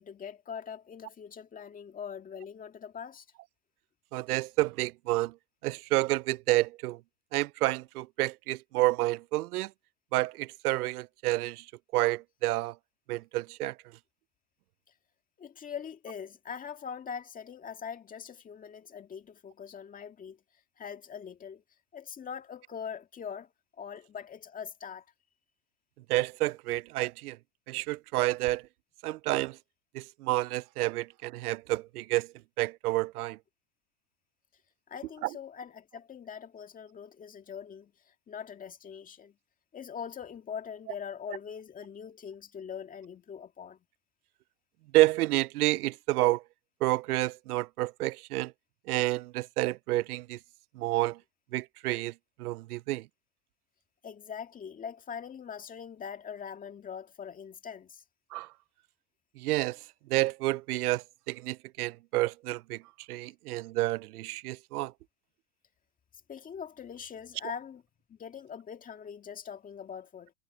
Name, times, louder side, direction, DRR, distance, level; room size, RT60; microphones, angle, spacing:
voice 1, 0.0-3.3 15.4-20.4 20.8-21.6 21.9-23.5 23.8-25.1 34.9-39.4 39.7-43.8 54.0-58.0 66.3-67.8 68.1-70.3, left 7 dB, 20° left, 2.0 m, -42 dB
voice 2, 4.1-5.3 5.6-7.0 7.3-9.7 10.1-11.7 11.9-12.7 13.1-13.7 26.1-27.4 27.7-28.6 29.0-29.6 29.9-32.3 32.6-33.4 44.9-46.4 46.8-48.5 48.9-50.4 50.8-51.2 51.5-52.1 52.4-53.1 58.3-58.5 59.4-59.8 60.1-62.8 63.1-64.9, right 18 dB, 85° right, 0.6 m, -29 dB
supercardioid pair, 135°, 44 cm